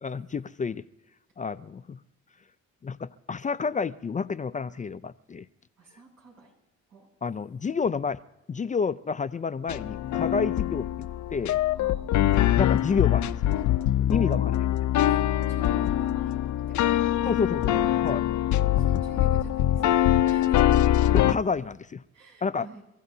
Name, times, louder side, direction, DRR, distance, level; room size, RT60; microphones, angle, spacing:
voice 1, 0.0-0.8 1.4-2.0 2.8-5.5 7.2-8.2 8.5-11.6 12.6-13.4 14.1-14.7 17.2-18.2 21.1-22.0 22.4-22.7, left 5 dB, 25° left, 13 dB, 0.4 m, -29 dB
voice 2, 5.8-6.5 6.9-7.1 11.7-12.0 15.0-15.2 15.5-17.5 18.7-20.0 20.2-20.9 22.1-22.8, right 2 dB, 80° right, -1 dB, 7.7 m, -48 dB
sound 1, 9.7-21.3, left 12 dB, 70° left, 0.6 m, -23 dB
30.0 x 15.0 x 2.8 m, 0.92 s
cardioid pair, 90°, 30 cm